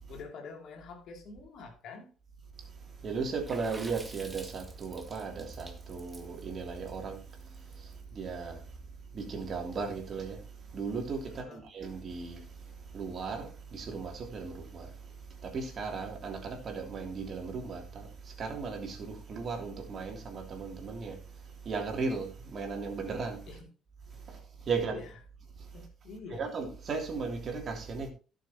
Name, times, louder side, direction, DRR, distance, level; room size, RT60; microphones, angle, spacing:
voice 1, 0.1-2.1 11.3-11.6 23.5-23.6 24.3-24.4 24.7-25.1 25.7-26.5, left 4 dB, 55° left, 2.8 m, -46 dB
voice 2, 2.5-23.5 24.1-25.0 25.6-25.8 26.3-28.1, right 4 dB, 45° right, 3.0 m, -37 dB
Water / Splash splatter, 3.5-7.9, right 1 dB, 10° right, 1.9 m, -49 dB
16.5 x 6.7 x 3.0 m
figure-of-eight pair, 50°, 0 cm